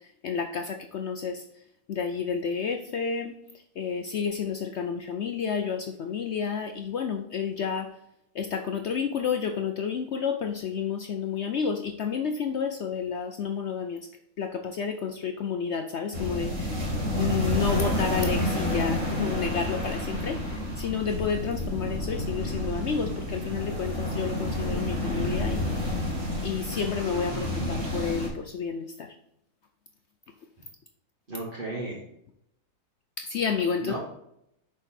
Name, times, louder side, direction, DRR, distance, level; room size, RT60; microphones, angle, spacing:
voice 1, 0.2-1.4 1.9-3.3 3.8-7.9 8.4-14.0 14.4-16.5 17.2-20.4 20.8-25.6 26.4-27.3 27.7-28.9 33.3-34.0, left 6 dB, 65° left, 6 dB, 0.7 m, -30 dB
sound 1, 16.1-28.3, left 1 dB, 50° right, 2.5 m, -29 dB
voice 2, 27.3-27.8 31.3-32.0 33.8-34.0, right 2 dB, 35° right, -6 dB, 1.8 m, -35 dB
6.4 x 5.1 x 4.2 m, 0.76 s
omnidirectional pair, 1.7 m